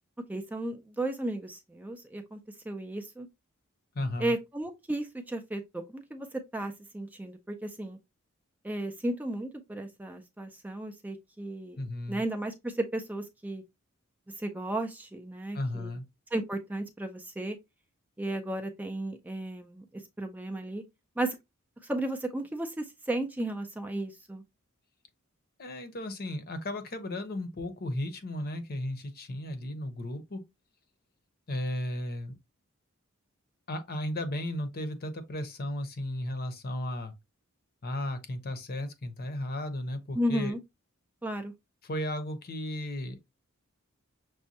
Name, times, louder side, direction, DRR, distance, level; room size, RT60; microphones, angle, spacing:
voice 1, 0.3-2.4 2.7-3.3 4.2-8.0 8.6-13.6 14.3-16.0 16.3-17.6 18.2-20.8 21.2-21.4 21.8-24.4 40.2-40.6 41.2-41.5, right 1 dB, 10° right, 0.4 m, -34 dB
voice 2, 3.9-4.3 11.8-12.2 15.5-16.0 25.6-30.4 31.5-32.4 33.7-37.1 37.8-40.5 41.8-43.2, left 1 dB, 45° left, 0.7 m, -35 dB
6.2 x 2.2 x 2.7 m
head